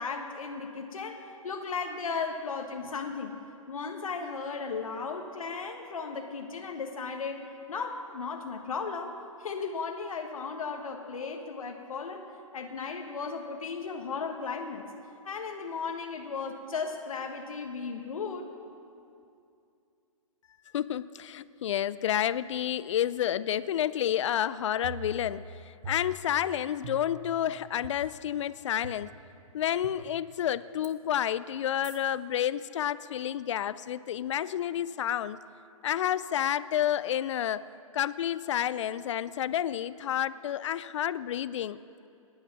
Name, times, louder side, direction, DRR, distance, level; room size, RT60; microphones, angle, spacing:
voice 1, 0.0-3.4 3.7-7.4 7.7-14.9 15.2-18.5, left 5 dB, 75° left, 4 dB, 1.3 m, -36 dB
voice 2, 20.7-29.1 29.5-35.4 35.8-37.7 37.9-41.8, left 10 dB, 60° left, 17 dB, 0.5 m, -30 dB
sound 1, 24.8-25.5 25.8-26.4 26.8-27.3 27.8-27.9 28.8-28.9 29.8-29.9 30.8-30.9 31.8-32.0, right 2 dB, 60° right, 1.4 m, -41 dB
19.5 x 8.9 x 5.9 m, 2.6 s
hypercardioid pair, 135°, 18 cm